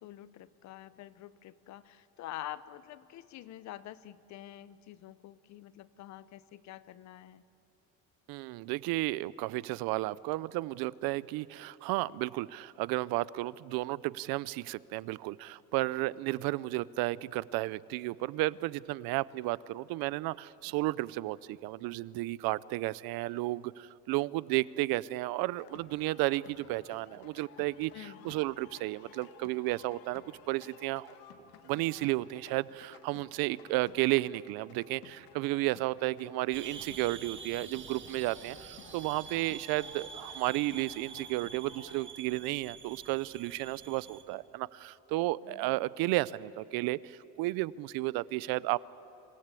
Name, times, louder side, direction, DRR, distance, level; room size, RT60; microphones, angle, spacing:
voice 1, 0.0-7.4 27.9-28.3 45.4-45.8, left 13 dB, 50° left, 16 dB, 0.7 m, -47 dB
voice 2, 8.3-31.2 31.6-48.8, right 19 dB, 90° right, 20 dB, 0.6 m, -33 dB
sound 1, 25.6-42.1, left 9 dB, 80° left, 1.5 m, -56 dB
sound 2, 36.5-44.2, right 7 dB, 35° right, 1.4 m, -47 dB
26.0 x 17.0 x 8.3 m, 2.9 s
cardioid pair, 160°, 35 cm